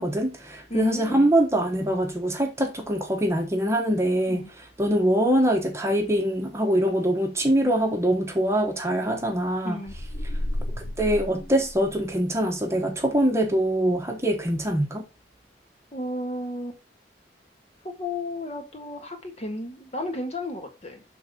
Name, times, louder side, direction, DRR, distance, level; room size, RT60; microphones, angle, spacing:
voice 1, 0.0-4.4 4.8-9.8 11.0-15.0, right 1 dB, 15° right, 1.2 m, -23 dB
voice 2, 0.7-1.3 4.3-4.5 9.6-10.0 15.9-16.8 17.8-21.0, left 1 dB, 35° left, 1.8 m, -33 dB
sound 1, 9.9-12.3, left 1 dB, 60° left, 1.0 m, -32 dB
6.7 x 3.9 x 5.8 m
head